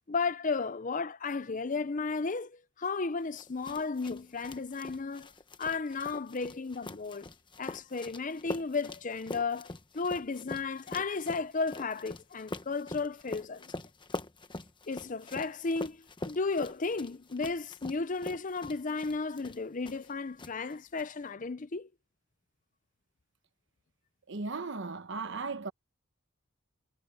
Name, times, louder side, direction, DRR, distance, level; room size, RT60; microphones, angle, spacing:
voice 1, 0.1-5.3 5.6-7.3 7.6-9.7 9.9-13.7 14.9-21.9, left 4 dB, 40° left, 0.6 m, -34 dB
sound 1, 3.4-20.1 20.4-21.0, left 2 dB, 25° left, 1.1 m, -44 dB
voice 2, 24.3-25.7, right 4 dB, 60° right, 1.1 m, -36 dB
head